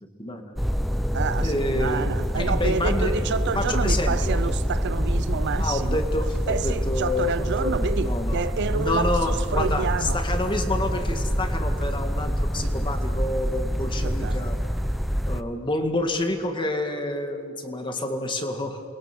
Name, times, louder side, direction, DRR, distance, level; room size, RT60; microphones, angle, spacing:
voice 1, 0.2-0.5 1.4-2.1 2.3-3.1 3.6-4.4 5.6-8.4 8.7-14.6 15.3-18.8, left 1 dB, 25° left, 2.0 m, -28 dB
sound 1, 0.6-15.4, equal, ahead, 0.7 m, -26 dB
voice 2, 1.1-6.0 6.5-10.2 14.0-14.4, right 5 dB, 55° right, 0.5 m, -29 dB
29.0 x 22.5 x 6.2 m
head